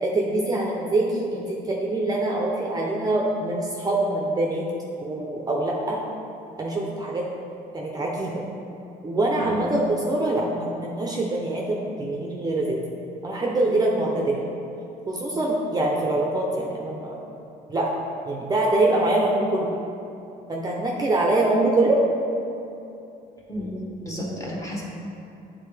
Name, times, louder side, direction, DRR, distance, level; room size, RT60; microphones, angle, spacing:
voice 1, 0.0-4.7 5.0-6.0 6.6-7.3 7.7-8.3 9.0-12.8 13.2-14.4 15.1-17.2 17.7-17.9 18.3-19.7 20.5-22.0, right 2 dB, 25° right, -2 dB, 0.7 m, -24 dB
voice 2, 23.5-24.8, equal, 20° left, -4 dB, 1.4 m, -32 dB
8.8 x 3.8 x 3.3 m, 2.8 s
cardioid pair, 110°, 17 cm